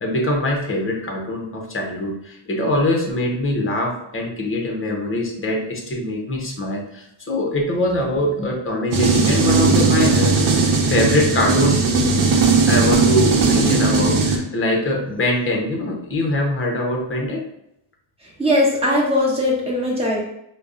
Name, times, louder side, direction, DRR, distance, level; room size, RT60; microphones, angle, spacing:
voice 1, 0.0-10.4 10.9-11.8 12.7-17.4, left 1 dB, 25° left, 0 dB, 0.8 m, -23 dB
sound 1, 8.9-14.4, right 4 dB, 75° right, 0.8 m, -17 dB
voice 2, 18.4-20.2, left 1 dB, 10° right, -5 dB, 1.2 m, -19 dB
5.2 x 2.2 x 2.4 m, 0.79 s
wide cardioid pair, 135°, 48 cm